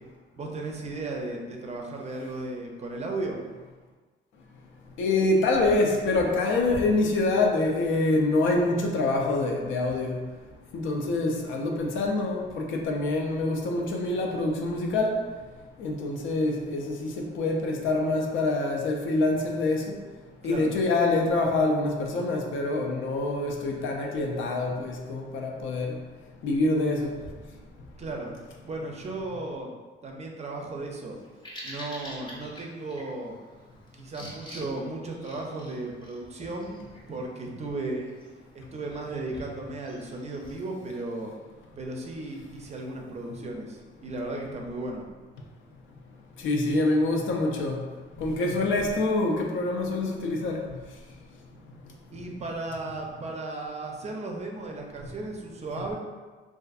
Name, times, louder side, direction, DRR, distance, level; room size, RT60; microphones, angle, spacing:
voice 1, 0.3-3.4 20.4-20.7 28.0-28.3 28.6-29.7 30.0-31.2 31.6-33.4 33.9-36.8 37.1-38.1 38.5-41.3 41.8-45.1 52.1-55.9, right 2 dB, 35° right, 1 dB, 0.4 m, -35 dB
voice 2, 5.0-10.2 10.7-15.1 15.8-20.0 20.4-25.9 26.4-27.1 46.4-47.8 48.2-50.6, left 2 dB, 80° left, 1 dB, 0.5 m, -26 dB
Bird vocalization bird call bird song, 31.1-40.5, equal, 25° left, 0.6 m, -47 dB
2.5 x 2.4 x 2.3 m, 1.4 s
cardioid pair, 90°, 20 cm